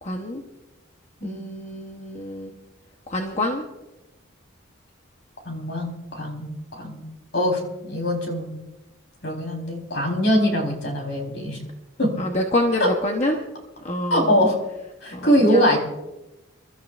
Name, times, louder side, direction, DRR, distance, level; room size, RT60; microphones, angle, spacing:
voice 1, 0.0-0.4 1.2-2.5 3.1-3.6 12.2-13.4 13.8-14.3 15.1-15.8, left 1 dB, 35° left, 2 dB, 1.0 m, -27 dB
voice 2, 5.5-7.0 7.3-8.6 9.2-11.6 12.0-12.1 12.8-12.9 14.1-14.6 15.0-15.8, equal, 55° left, 1 dB, 4.0 m, -22 dB
28.5 x 13.0 x 2.5 m, 0.99 s
head